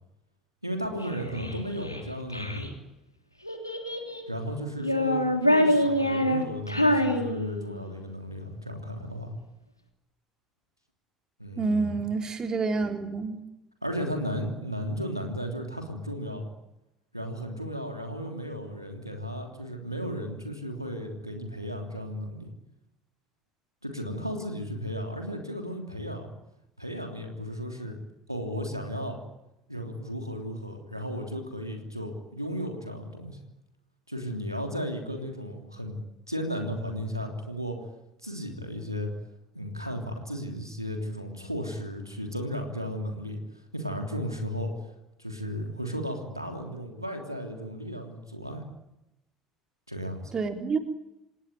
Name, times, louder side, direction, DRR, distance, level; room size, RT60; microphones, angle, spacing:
voice 1, 0.6-2.8 4.3-9.3 11.4-12.0 13.8-16.5 17.1-22.5 23.8-26.3 26.8-28.0 28.3-29.2 29.7-33.4 34.1-36.0 36.3-37.8 38.2-39.1 39.5-43.4 43.7-44.7 45.2-48.6 49.9-50.3, equal, 90° right, 4 dB, 3.3 m, -34 dB
Child speech kid speaking, 1.0-2.7 3.4-4.3 4.8-7.9, left 1 dB, 90° left, 3.0 m, -26 dB
voice 2, 11.6-13.4 50.3-50.8, right 4 dB, 30° right, 6 dB, 3.9 m, -28 dB
28.5 x 18.5 x 9.2 m, 0.90 s
figure-of-eight pair, 60°, 2 cm